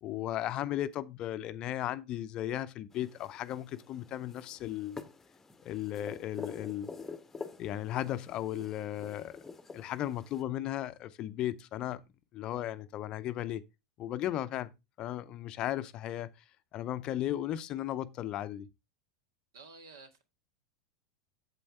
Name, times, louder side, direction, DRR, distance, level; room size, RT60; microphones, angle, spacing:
voice 1, 0.0-5.0 5.6-6.9 7.6-9.4 9.7-12.0 12.3-13.6 14.0-14.7 15.0-16.3 16.7-18.7, left 12 dB, 40° left, 0.6 m, -35 dB
sound 1, 2.9-10.4, left 4 dB, 15° left, 0.9 m, -47 dB
voice 2, 19.5-20.2, right 3 dB, 65° right, 1.8 m, -51 dB
8.6 x 7.6 x 3.4 m
figure-of-eight pair, 85°, 2 cm